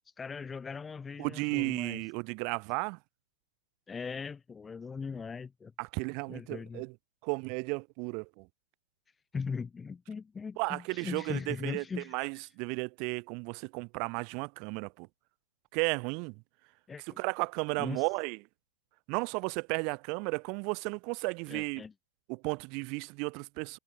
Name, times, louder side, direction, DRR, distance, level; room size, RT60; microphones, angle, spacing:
voice 1, 0.2-2.0 3.9-5.7 6.3-6.8 9.3-12.1 16.9-17.2 17.8-18.1 21.5-21.9, left 5 dB, 15° left, 2.0 m, -39 dB
voice 2, 1.2-3.0 5.8-6.9 7.2-8.5 10.6-15.1 15.7-16.3 17.2-18.4 19.1-21.8 22.3-23.8, right 33 dB, 50° right, 0.6 m, -34 dB
hypercardioid pair, 105°, 0 cm